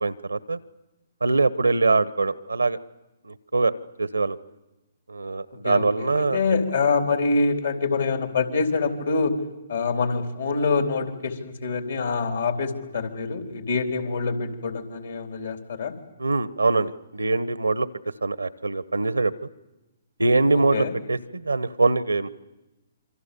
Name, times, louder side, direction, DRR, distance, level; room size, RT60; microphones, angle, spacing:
voice 1, 0.0-0.6 1.2-2.8 3.2-3.7 4.0-4.4 5.1-6.4 16.2-17.9 18.2-19.3 20.2-22.3, right 3 dB, 90° right, 17 dB, 1.0 m, -23 dB
voice 2, 5.6-9.3 9.7-15.9 20.7-20.9, left 4 dB, 75° left, 5 dB, 3.6 m, -25 dB
27.0 x 24.5 x 7.0 m, 1.0 s
figure-of-eight pair, 130°, 0 cm